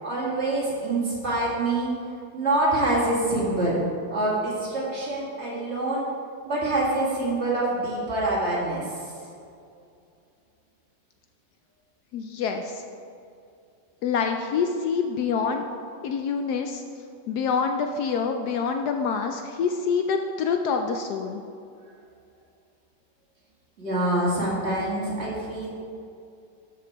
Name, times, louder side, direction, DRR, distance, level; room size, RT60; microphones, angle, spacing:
voice 1, 0.0-2.0 2.3-3.8 4.1-6.1 6.5-9.1 23.8-25.7, right 2 dB, 40° right, -6 dB, 2.3 m, -25 dB
voice 2, 12.1-12.8 14.0-15.6 16.0-16.8 17.3-21.4, left 5 dB, 75° left, 5 dB, 1.0 m, -26 dB
12.0 x 5.0 x 4.5 m, 2.4 s
omnidirectional pair, 1.9 m